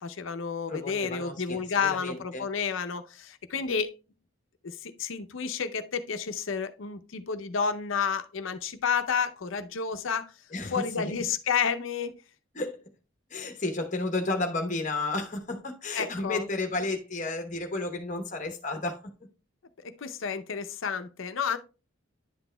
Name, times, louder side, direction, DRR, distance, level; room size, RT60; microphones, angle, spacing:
voice 1, 0.0-3.9 4.6-10.3 10.7-12.2 15.9-16.5 19.8-21.6, left 6 dB, 75° left, 0.6 m, -30 dB
voice 2, 0.7-2.5 10.5-11.1 12.5-12.8 13.3-19.3, left 2 dB, 40° left, 0.9 m, -32 dB
10.5 x 6.1 x 2.2 m
head